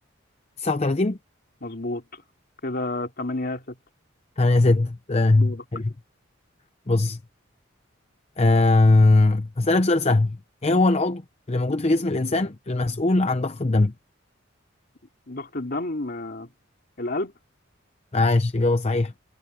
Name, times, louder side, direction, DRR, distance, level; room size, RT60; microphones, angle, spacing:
voice 1, 0.6-1.2 4.4-5.9 6.9-7.2 8.4-11.2 11.5-13.9 18.1-19.1, left 2 dB, 30° left, 0.6 m, -20 dB
voice 2, 1.6-2.2 2.6-3.8 5.3-5.6 15.3-16.5 17.0-17.3, left 2 dB, 50° left, 3.1 m, -30 dB
head